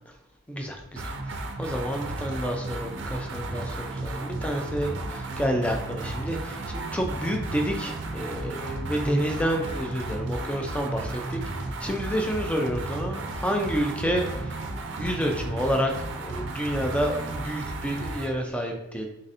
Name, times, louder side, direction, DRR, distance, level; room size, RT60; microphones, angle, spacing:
voice 1, 0.5-1.1 1.6-11.4 11.8-14.5 15.0-15.9 16.2-19.1, equal, 5° left, 2 dB, 0.4 m, -29 dB
sound 1, 1.0-18.4, right 2 dB, 60° right, 0.5 m, -33 dB
4.1 x 3.9 x 2.7 m, 0.87 s
head